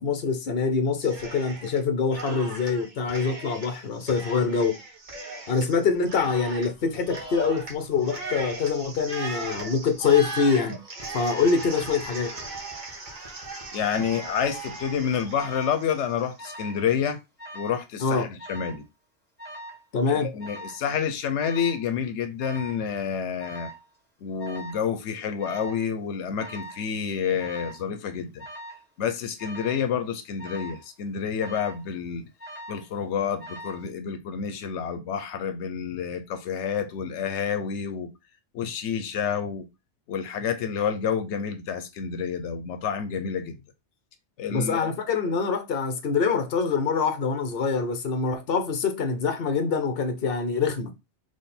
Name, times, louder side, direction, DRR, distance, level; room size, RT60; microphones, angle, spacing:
voice 1, 0.0-4.7 5.5-10.8 11.1-12.3 18.0-18.3 19.9-20.3 44.5-50.9, left 5 dB, 60° left, 1.0 m, -25 dB
Cheering, 1.0-1.8 2.1-16.5, right 3 dB, 45° right, 1.3 m, -38 dB
voice 2, 13.7-17.2 17.5-18.8 20.1-23.7 24.2-28.4 29.0-32.2 32.7-38.1 38.5-39.7 40.1-43.6 44.4-44.9, left 7 dB, 85° left, 0.9 m, -29 dB
Alarm, 15.4-15.8 16.4-16.9 17.1-17.8 18.4-18.8 19.4-19.8 20.4-20.8 21.4-21.8 22.4-22.8 23.4-23.8 24.4-24.8 25.4-25.8 26.4-26.8 27.4-27.8 28.4-28.8 29.4-29.8 30.4-30.8 31.4-31.9 32.4-32.9 33.4-33.9, right 1 dB, 10° right, 1.4 m, -41 dB
3.6 x 3.2 x 4.2 m
omnidirectional pair, 1.2 m